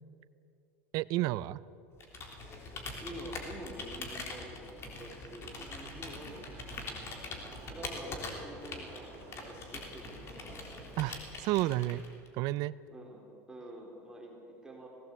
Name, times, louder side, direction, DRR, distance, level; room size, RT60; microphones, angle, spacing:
voice 1, 0.9-1.6 11.0-12.0 12.3-12.7, right 17 dB, 60° right, 19 dB, 0.6 m, -31 dB
Computer keyboard, 2.0-12.3, left 3 dB, 35° left, 3.5 m, -43 dB
voice 2, 3.0-6.5 7.5-10.7 12.9-13.2 13.5-14.9, right 1 dB, 10° right, -1 dB, 3.7 m, -47 dB
sound 1, 5.7-11.1, right 6 dB, 35° right, 1.5 m, -55 dB
18.5 x 17.5 x 8.2 m, 2.5 s
supercardioid pair, 120°, 7 cm